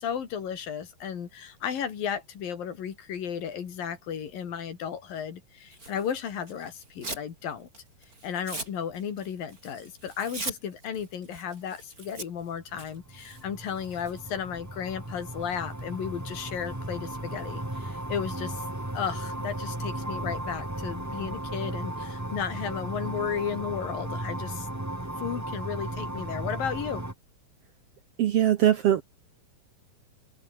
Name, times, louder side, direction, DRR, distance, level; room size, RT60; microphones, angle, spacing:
voice 1, 0.0-7.7 8.2-18.6 18.9-24.7 25.1-27.0, left 8 dB, 80° left, 4.6 m, -34 dB
Tearing, 5.7-7.3 7.7-14.2, right 2 dB, 25° right, 6.1 m, -41 dB
sound 1, 12.8-27.1, right 1 dB, 10° right, 1.1 m, -35 dB
voice 2, 28.2-29.0, right 11 dB, 75° right, 1.4 m, -21 dB
open air
omnidirectional pair, 3.9 m